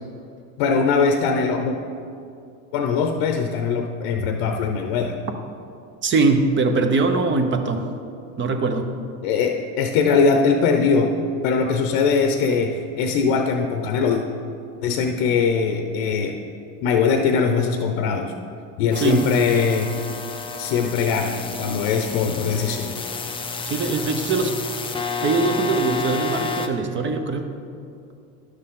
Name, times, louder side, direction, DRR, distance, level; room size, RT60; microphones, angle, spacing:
voice 1, 0.6-1.8 2.7-5.2 9.2-11.1 11.4-14.2 14.8-16.4 16.8-18.3 18.8-19.9 20.6-22.9, left 5 dB, 65° left, 5 dB, 0.8 m, -21 dB
voice 2, 6.0-7.8 8.4-8.9 19.0-19.3 23.6-24.5 25.2-27.5, right 3 dB, 30° right, 6 dB, 0.8 m, -21 dB
sound 1, 18.9-26.7, left 4 dB, 15° left, 0.5 m, -30 dB
11.0 x 6.5 x 3.7 m, 2.5 s
supercardioid pair, 110°, 39 cm